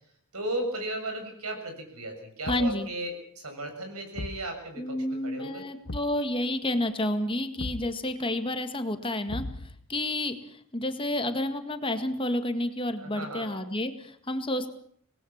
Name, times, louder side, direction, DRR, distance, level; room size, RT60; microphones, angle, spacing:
voice 1, 0.3-5.7 12.9-13.5, right 1 dB, 85° right, 5 dB, 7.1 m, -35 dB
Thump thud, 2.4-2.9 4.2-4.5 5.9-6.2 7.6-7.9 9.3-9.9, left 1 dB, 65° left, 1.2 m, -37 dB
voice 2, 2.5-2.9 4.8-9.4 9.9-14.7, left 1 dB, 25° left, 8 dB, 1.9 m, -30 dB
25.5 x 19.5 x 7.3 m, 0.64 s
head